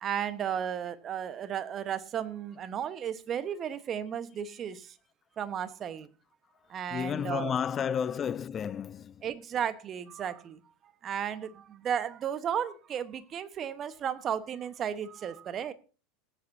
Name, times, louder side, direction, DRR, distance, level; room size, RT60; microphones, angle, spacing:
voice 1, 0.0-4.9 5.4-6.1 6.7-7.5 9.2-10.6 11.0-15.7, right 8 dB, 35° right, 1.2 m, -34 dB
voice 2, 6.9-9.2, left 8 dB, 30° left, 0.4 m, -32 dB
18.5 x 9.8 x 2.7 m
hypercardioid pair, 85°, 0 cm